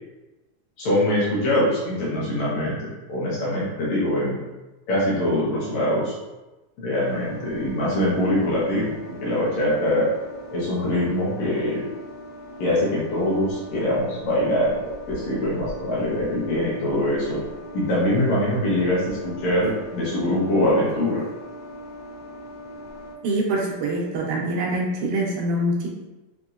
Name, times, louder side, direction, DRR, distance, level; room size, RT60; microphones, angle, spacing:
voice 1, 0.8-4.4 4.9-6.1 6.8-10.1 10.5-11.8 12.6-17.4 17.7-21.2, left 1 dB, 70° left, -7 dB, 2.4 m, -23 dB
sound 1, 6.9-23.1, left 1 dB, 50° left, 1.9 m, -41 dB
voice 2, 23.2-25.9, right 1 dB, 85° right, -2 dB, 2.3 m, -24 dB
5.7 x 2.8 x 2.5 m, 1.1 s
omnidirectional pair, 3.6 m